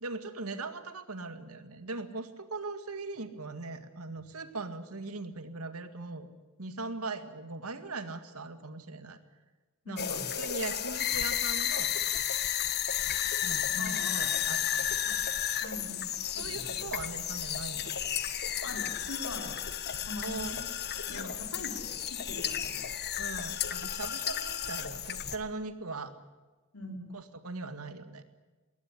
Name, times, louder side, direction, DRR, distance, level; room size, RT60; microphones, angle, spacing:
voice 1, 0.0-6.3 6.6-9.2 9.9-12.2 13.4-14.9 16.4-17.9 20.2-20.5 21.1-21.5 23.2-26.1 27.1-28.2, right 3 dB, 90° right, 9 dB, 2.1 m, -40 dB
voice 2, 9.8-10.3 13.8-14.3 15.0-15.1 15.6-16.9 18.6-19.5 20.0-20.6 21.1-22.8 26.7-27.0, left 2 dB, 80° left, 3 dB, 4.5 m, -42 dB
sound 1, 10.0-25.4, left 10 dB, 50° left, 1.4 m, -33 dB
20.5 x 19.0 x 9.9 m, 1.2 s
head